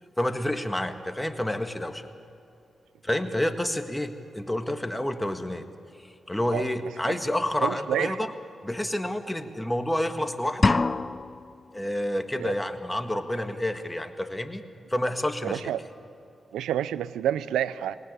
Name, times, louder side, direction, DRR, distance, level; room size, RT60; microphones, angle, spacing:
voice 1, 0.2-2.1 3.0-5.7 6.0-8.3 8.6-10.8 11.7-14.6 14.9-15.6, left 1 dB, 10° left, 8 dB, 1.8 m, -29 dB
voice 2, 7.6-8.2 12.4-12.5 15.4-15.8 16.5-18.0, right 11 dB, 85° right, 17 dB, 0.5 m, -28 dB
sound 1, 10.6-11.6, left 3 dB, 40° left, 0.5 m, -24 dB
19.0 x 19.0 x 8.6 m, 2.5 s
supercardioid pair, 40°, 0 cm